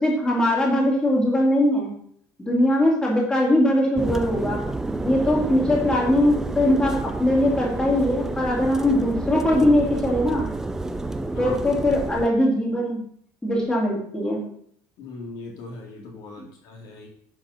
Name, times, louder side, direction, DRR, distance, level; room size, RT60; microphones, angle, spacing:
voice 1, 0.0-1.9 2.4-4.6 5.0-10.4 11.4-13.0 13.4-14.4, left 1 dB, 10° left, -3 dB, 2.6 m, -21 dB
sound 1, 4.0-12.3, right 2 dB, 5° right, 0.4 m, -29 dB
voice 2, 15.0-17.1, left 3 dB, 55° left, -1 dB, 2.3 m, -38 dB
10.5 x 4.1 x 5.7 m, 0.64 s
cardioid pair, 155°, 8 cm